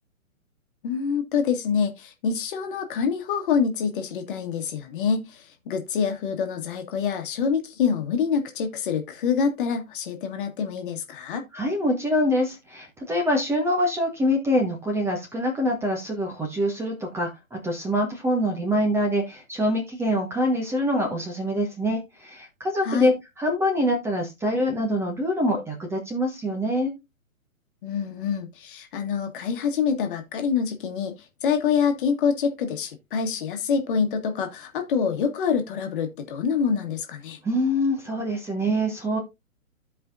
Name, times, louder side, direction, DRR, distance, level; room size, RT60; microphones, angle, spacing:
voice 1, 0.8-11.4 22.8-23.1 27.8-37.4, left 6 dB, 40° left, 1.7 m, -26 dB
voice 2, 11.5-26.9 37.4-39.2, equal, 5° right, 1.2 m, -25 dB
15.0 x 5.0 x 2.6 m
figure-of-eight pair, 125°, 42 cm